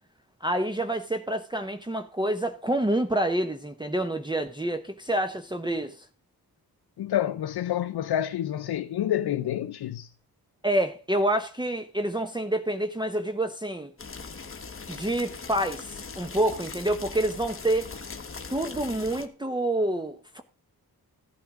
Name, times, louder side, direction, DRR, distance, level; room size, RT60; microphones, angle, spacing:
voice 1, 0.4-6.0 10.6-13.9 14.9-17.9 18.5-20.4, right 1 dB, 10° right, 0.9 m, -27 dB
voice 2, 7.0-10.1, left 11 dB, 90° left, 0.6 m, -28 dB
sound 1, 14.0-19.3, left 4 dB, 35° left, 1.2 m, -40 dB
15.0 x 9.1 x 3.7 m
wide cardioid pair, 95°, 38 cm